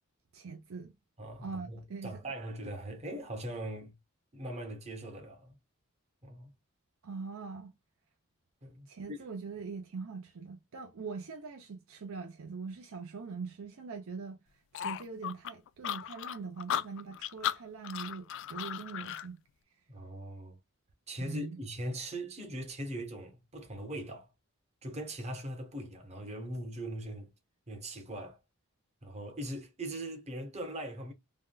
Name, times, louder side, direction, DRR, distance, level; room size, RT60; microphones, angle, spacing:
voice 1, 0.3-0.9 1.4-2.1 7.0-7.7 8.9-14.4 14.7-19.4 21.2-21.6, right 4 dB, 70° right, 0.6 m, -42 dB
voice 2, 1.2-3.9 4.3-5.6 6.2-6.5 8.6-9.2 19.9-20.6 21.1-24.3 24.8-27.3 27.7-28.4 29.0-31.1, right 1 dB, 30° right, 0.9 m, -40 dB
sound 1, 14.7-19.3, left 10 dB, 60° left, 0.3 m, -36 dB
3.5 x 2.2 x 2.2 m
head